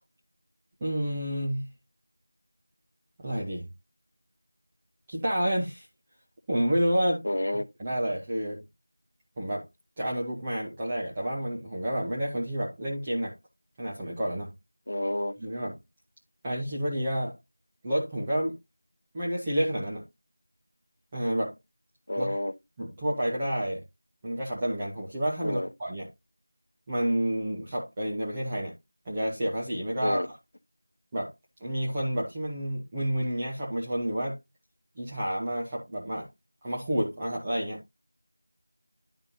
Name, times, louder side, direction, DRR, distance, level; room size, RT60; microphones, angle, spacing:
voice 1, 0.8-1.7 3.2-3.7 5.1-5.9 6.5-7.3 7.8-8.6 9.4-9.7 10.0-13.3 13.8-14.5 15.4-15.8 16.4-17.4 17.8-18.6 19.1-20.0 21.1-21.5 22.2-22.4 22.8-23.8 24.2-26.1 26.9-28.7 29.0-30.4 31.1-31.3 31.6-34.4 35.0-36.3 36.6-37.8, equal, 10° right, 0.9 m, -29 dB
voice 2, 7.3-7.6 14.9-15.3 22.1-22.5 25.4-25.7 30.0-30.3, left 1 dB, 55° left, 0.9 m, -29 dB
11.0 x 5.5 x 2.7 m
figure-of-eight pair, 175°, 0 cm